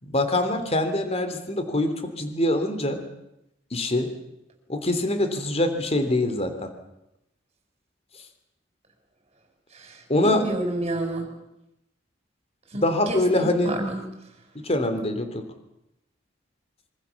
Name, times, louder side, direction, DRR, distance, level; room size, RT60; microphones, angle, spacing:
voice 1, 0.0-3.0 3.7-4.1 4.7-6.7 10.1-10.4 12.8-13.8 14.6-15.4, left 1 dB, 35° left, 8 dB, 3.2 m, -24 dB
voice 2, 9.7-11.3 12.7-14.0, right 1 dB, 35° right, 5 dB, 6.3 m, -30 dB
26.0 x 24.5 x 7.2 m, 0.86 s
head